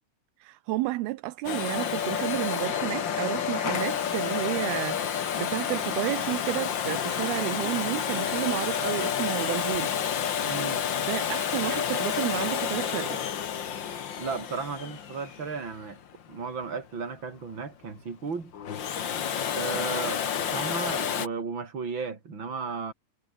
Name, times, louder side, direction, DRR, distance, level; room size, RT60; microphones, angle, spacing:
voice 1, 0.4-10.0 11.1-13.2, right 18 dB, 85° right, 2.7 m, -31 dB
Domestic sounds home sounds, 1.4-16.2 18.5-21.3, left 8 dB, 85° left, 1.0 m, -30 dB
voice 2, 10.4-10.8 14.2-16.0 16.3-18.5 19.5-20.2 20.5-22.9, right 5 dB, 30° right, 4.4 m, -34 dB
omnidirectional pair, 4.5 m